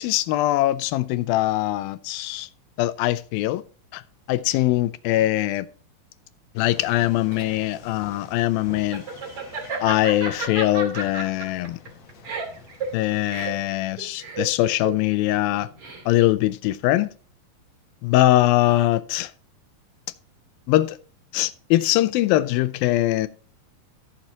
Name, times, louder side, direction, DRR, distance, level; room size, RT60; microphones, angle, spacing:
voice 1, 0.0-2.5 2.8-3.6 3.9-4.0 4.3-5.7 6.6-9.0 9.8-11.8 12.9-15.7 16.1-17.1 18.0-19.3 20.7-21.0 21.3-23.3, left 15 dB, 85° left, 2.4 m, -22 dB
sound 1, 6.6-13.7, left 4 dB, 55° left, 2.6 m, -48 dB
Laughter, 6.9-16.3, right 4 dB, 40° right, 3.4 m, -33 dB
14.5 x 7.4 x 2.9 m
omnidirectional pair, 4.2 m